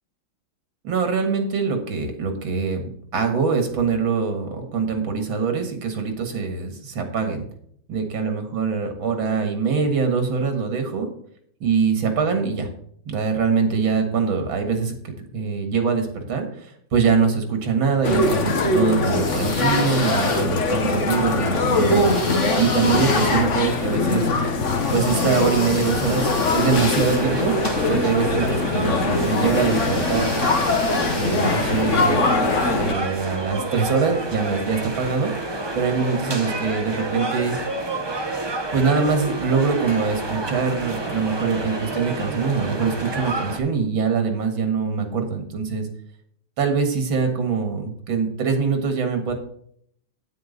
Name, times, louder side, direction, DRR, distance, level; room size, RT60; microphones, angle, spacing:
voice 1, 0.8-2.8 3.1-7.5 7.9-11.1 11.6-12.7 13.1-24.3 24.9-27.5 27.9-30.4 31.1-32.2 32.7-35.3 35.8-37.6 38.7-45.9 46.6-49.3, right 5 dB, 90° right, 6 dB, 2.5 m, -23 dB
sound 1, 18.0-32.9, left 3 dB, 45° left, 1.3 m, -22 dB
sound 2, 18.9-20.8 21.6-28.0 29.1-32.2, left 1 dB, 25° left, 1.9 m, -34 dB
sound 3, 27.0-43.6, right 2 dB, 30° right, 0.5 m, -29 dB
9.5 x 9.1 x 4.0 m, 0.65 s
omnidirectional pair, 2.1 m